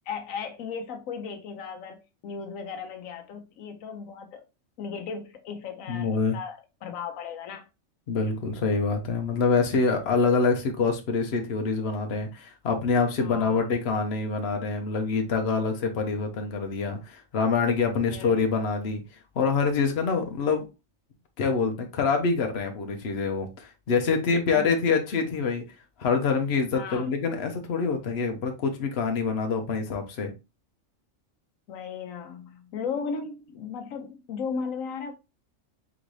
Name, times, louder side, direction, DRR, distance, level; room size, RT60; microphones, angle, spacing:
voice 1, 0.1-4.4 4.8-7.6 13.2-13.6 18.1-18.4 24.5-24.7 26.7-27.1 31.7-35.1, left 6 dB, 80° left, 1.1 m, -36 dB
voice 2, 5.9-6.4 8.1-19.0 19.3-20.6 21.4-25.6 26.0-30.3, left 4 dB, 55° left, 1.1 m, -26 dB
3.9 x 3.9 x 3.1 m
omnidirectional pair, 1.4 m